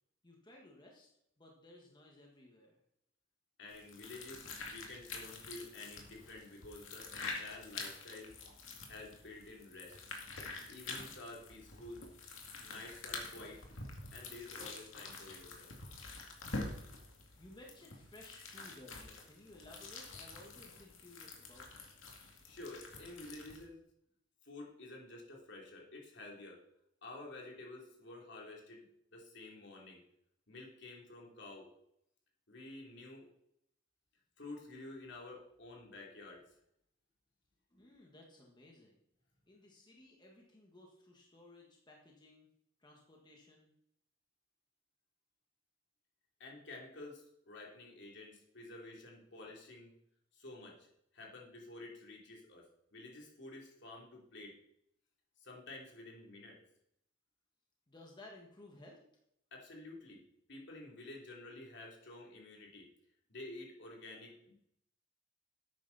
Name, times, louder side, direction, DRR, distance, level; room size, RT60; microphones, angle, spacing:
voice 1, 0.2-1.1 1.4-2.8 17.4-21.9 37.7-39.0 39.5-42.5 42.8-43.7 57.9-59.0, left 1 dB, 20° left, -1 dB, 1.5 m, -57 dB
voice 2, 3.6-8.4 8.9-10.0 10.7-12.1 12.6-13.6 14.1-15.7 22.4-23.8 24.4-26.6 27.0-28.9 29.1-30.0 30.5-31.7 32.5-33.3 34.4-36.4 46.4-49.9 50.3-50.9 51.1-54.6 55.4-56.6 59.5-60.2 60.5-62.9 63.3-64.5, left 2 dB, 60° left, -1 dB, 3.0 m, -50 dB
sound 1, 3.7-23.6, left 3 dB, 80° left, 2.3 m, -47 dB
11.5 x 9.0 x 4.1 m, 0.76 s
head